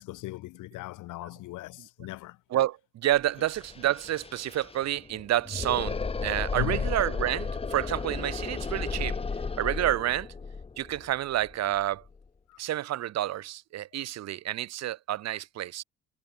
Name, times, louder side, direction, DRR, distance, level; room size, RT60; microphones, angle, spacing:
voice 1, 0.0-2.4 6.5-6.9 12.5-12.6, left 18 dB, 85° left, 0.6 m, -38 dB
voice 2, 2.5-9.2 9.6-10.3 10.8-12.0 12.6-15.8, right 13 dB, 60° right, 0.6 m, -29 dB
sound 1, 3.1-3.2 3.4-12.2, left 4 dB, 20° left, 0.7 m, -34 dB
cardioid pair, 90°, 30 cm